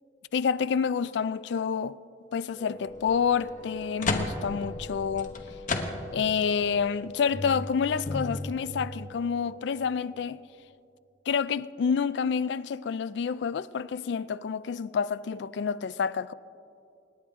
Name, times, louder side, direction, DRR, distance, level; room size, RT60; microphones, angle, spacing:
voice 1, 0.3-2.0 2.3-5.4 6.1-10.4 11.3-16.3, left 6 dB, 65° left, 0.3 m, -28 dB
Wind instrument woodwind instrument, 2.5-10.1, left 3 dB, ahead, 4.2 m, -45 dB
sound 1, 2.9-3.1 3.6-6.4 6.8-6.9 7.3-8.5, left 2 dB, 45° left, 1.1 m, -33 dB
26.5 x 10.0 x 3.6 m
head